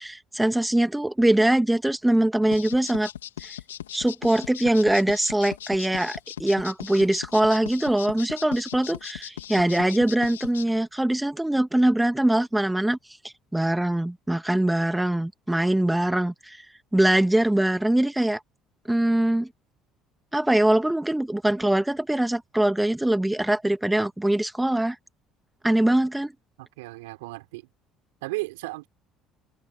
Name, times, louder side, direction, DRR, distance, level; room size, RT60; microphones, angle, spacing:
voice 1, 0.0-3.1 3.4-3.6 3.9-13.0 13.5-16.7 16.9-18.4 18.9-19.5 20.3-25.0 25.6-26.3, right 1 dB, 5° right, 2.1 m, -22 dB
sound 1, 2.5-10.6, left 11 dB, 80° left, 3.0 m, -38 dB
voice 2, 26.6-27.7 28.2-28.9, right 22 dB, 70° right, 4.7 m, -34 dB
figure-of-eight pair, 55°, 0 cm